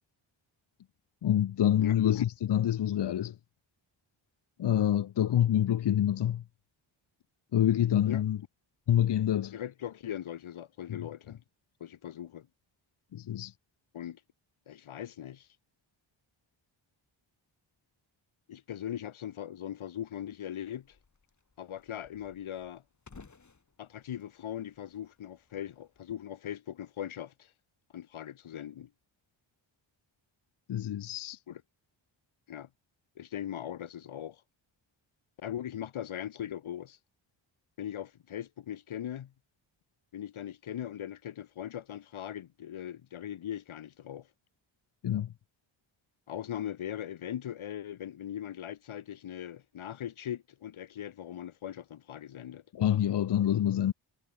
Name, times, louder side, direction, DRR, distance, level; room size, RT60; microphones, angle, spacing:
voice 1, 1.2-3.3 4.6-6.4 7.5-8.4 8.9-9.5 10.9-11.0 13.1-13.5 30.7-31.4 45.0-45.3 52.7-53.9, left 11 dB, 60° left, 0.7 m, -27 dB
voice 2, 9.5-11.4 11.8-12.5 13.9-14.2 14.7-15.5 18.5-21.0 21.6-22.8 23.8-27.5 27.9-28.9 31.5-31.6 32.5-32.7 33.2-34.4 35.4-37.0 37.8-39.3 40.1-44.3 46.3-52.6, left 10 dB, 85° left, 1.5 m, -40 dB
sound 1, 20.1-26.1, left 4 dB, 35° left, 6.0 m, -59 dB
wide cardioid pair, 125°, 48 cm